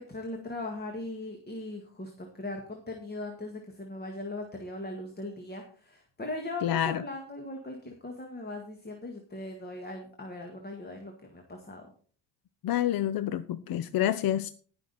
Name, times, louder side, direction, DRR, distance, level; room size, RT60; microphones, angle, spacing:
voice 1, 0.0-11.8, left 2 dB, 20° left, 1.9 m, -39 dB
voice 2, 6.6-7.0 12.6-14.5, left 11 dB, 55° left, 0.6 m, -28 dB
18.0 x 6.1 x 4.1 m
cardioid pair, 105°, 42 cm